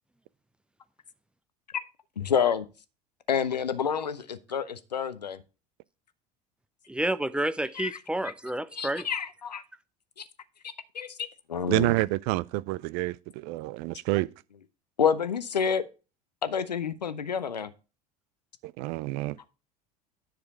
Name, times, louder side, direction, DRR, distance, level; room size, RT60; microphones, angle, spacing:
voice 1, 2.2-2.6 3.3-5.4 7.7-8.3 8.7-9.6 10.2-10.3 10.9-11.9 15.0-15.8 16.4-17.7, left 7 dB, 85° left, 0.7 m, -29 dB
voice 2, 6.9-9.0, right 1 dB, 5° right, 0.6 m, -29 dB
voice 3, 11.7-14.3 18.6-19.4, right 19 dB, 50° right, 0.5 m, -28 dB
10.5 x 6.7 x 4.1 m
figure-of-eight pair, 70°, 21 cm